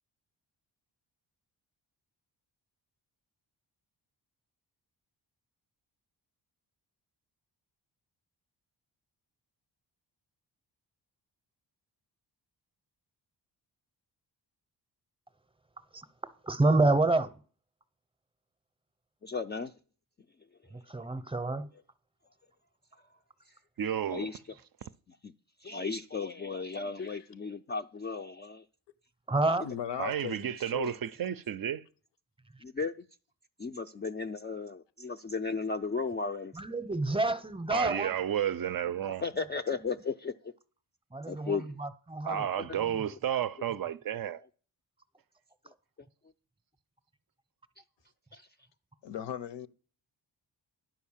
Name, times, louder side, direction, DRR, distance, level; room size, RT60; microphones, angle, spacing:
voice 1, 16.4-17.3 20.7-21.7 29.3-29.7 36.5-38.1 39.7-39.9 41.1-42.5, right 2 dB, 10° right, 0.7 m, -28 dB
voice 2, 19.2-19.7 24.1-24.4 25.2-25.3 25.6-28.6 32.6-32.9 33.6-36.5 39.2-40.3 41.3-41.8 48.3-48.5, left 4 dB, 25° left, 0.3 m, -35 dB
voice 3, 23.8-24.4 24.8-24.9 30.0-31.8 37.7-39.3 42.2-44.4, right 9 dB, 50° right, 0.5 m, -32 dB
voice 4, 29.6-30.9 49.0-49.7, left 9 dB, 70° left, 0.6 m, -38 dB
10.5 x 4.6 x 7.3 m
cardioid pair, 70°, 45 cm